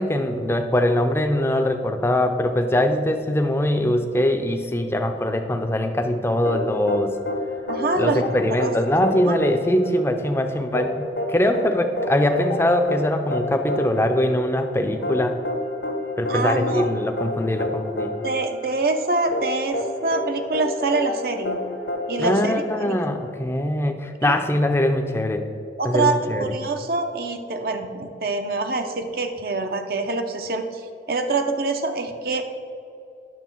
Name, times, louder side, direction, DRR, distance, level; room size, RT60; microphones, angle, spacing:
voice 1, 0.0-7.1 8.0-15.4 16.2-18.1 22.2-25.4 25.8-26.5, left 1 dB, 15° left, 6 dB, 0.5 m, -22 dB
sound 1, 6.4-23.3, left 1 dB, 80° left, 1.2 m, -29 dB
voice 2, 7.7-8.2 8.6-8.7 9.3-9.4 16.3-16.9 18.2-21.6 22.1-23.0 24.2-24.4 25.8-30.8 31.1-32.4, right 3 dB, 55° right, 6 dB, 0.6 m, -25 dB
9.2 x 6.4 x 4.5 m, 2.6 s
head